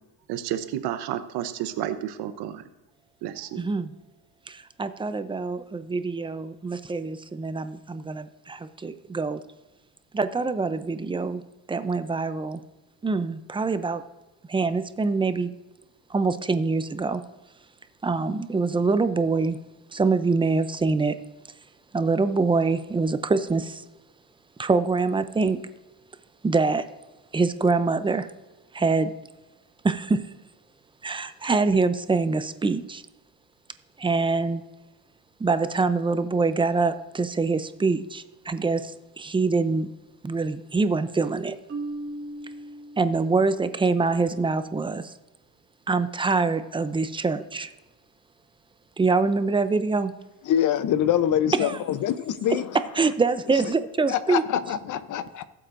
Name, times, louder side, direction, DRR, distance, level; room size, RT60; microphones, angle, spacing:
voice 1, 0.3-2.6 3.2-3.6, right 11 dB, 70° right, 10 dB, 1.0 m, -31 dB
voice 2, 3.6-3.9 4.5-9.4 10.1-11.4 11.7-12.6 13.0-14.0 14.5-15.5 16.1-17.2 18.0-19.6 19.9-21.1 21.9-23.8 24.6-25.6 26.4-26.8 27.3-28.3 28.7-29.1 29.8-30.2 31.0-33.0 34.0-34.6 35.4-39.9 40.2-41.6 43.0-45.1 45.9-47.7 49.0-50.1 51.6-51.8 53.0-54.4, right 4 dB, 10° right, 11 dB, 0.6 m, -25 dB
Marimba xylophone, 41.7-43.7, right 2 dB, 30° right, 2.2 m, -37 dB
voice 3, 50.5-52.7 54.1-55.4, left 10 dB, 50° left, 14 dB, 0.8 m, -24 dB
18.5 x 7.8 x 2.6 m, 1.1 s
cardioid pair, 115°, 41 cm